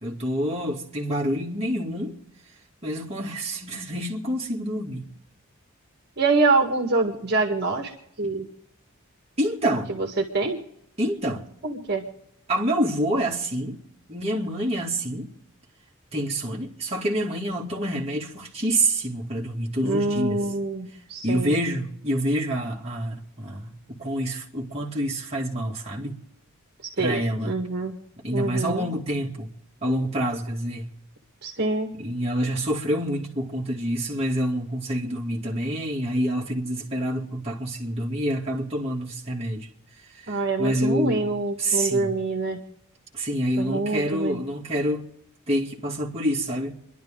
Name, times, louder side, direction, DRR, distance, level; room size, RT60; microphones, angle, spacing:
voice 1, 0.0-2.2 2.8-5.1 8.2-8.3 9.4-9.9 11.0-11.4 12.5-13.8 14.1-15.3 16.1-20.4 21.2-26.2 27.0-27.5 28.2-29.5 29.8-30.9 32.0-39.7 40.3-41.3 41.6-42.1 43.1-45.0 45.5-46.7, right 1 dB, 30° right, 2.3 m, -27 dB
voice 2, 6.2-7.9 8.2-8.5 9.9-10.6 11.6-12.1 19.8-21.6 27.0-28.0 28.3-28.9 31.4-31.9 40.3-42.6 43.6-44.4, right 3 dB, 50° right, 1.8 m, -25 dB
28.5 x 11.5 x 3.7 m
head